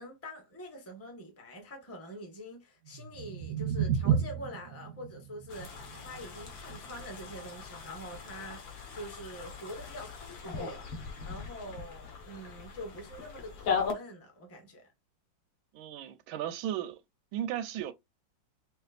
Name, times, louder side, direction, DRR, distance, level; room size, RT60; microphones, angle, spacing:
voice 1, 0.0-10.9 11.2-14.8, equal, 10° left, 0.8 m, -45 dB
sound 1, 2.8-9.0, right 7 dB, 70° right, 0.8 m, -34 dB
sound 2, 5.5-13.9, left 6 dB, 75° left, 1.9 m, -39 dB
voice 2, 15.7-17.0 17.3-17.9, right 11 dB, 85° right, 1.4 m, -35 dB
5.9 x 2.4 x 2.4 m
omnidirectional pair, 2.1 m